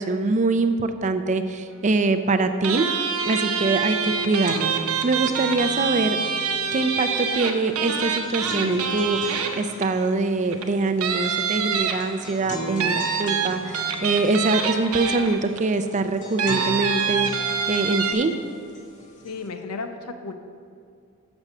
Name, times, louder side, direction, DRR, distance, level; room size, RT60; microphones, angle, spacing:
voice 1, 0.0-2.9 3.2-4.7 5.0-6.2 6.7-18.4, right 3 dB, 35° right, 9 dB, 0.4 m, -24 dB
sound 1, 2.6-10.1 10.5-10.6 11.0-12.3 12.8-15.6 16.4-18.1, right 6 dB, 75° right, 0.8 m, -25 dB
sound 2, 3.9-19.5, equal, 35° left, 1.0 m, -39 dB
voice 2, 19.2-20.3, left 4 dB, 85° left, 7 dB, 0.6 m, -33 dB
7.3 x 6.2 x 6.6 m, 2.4 s
head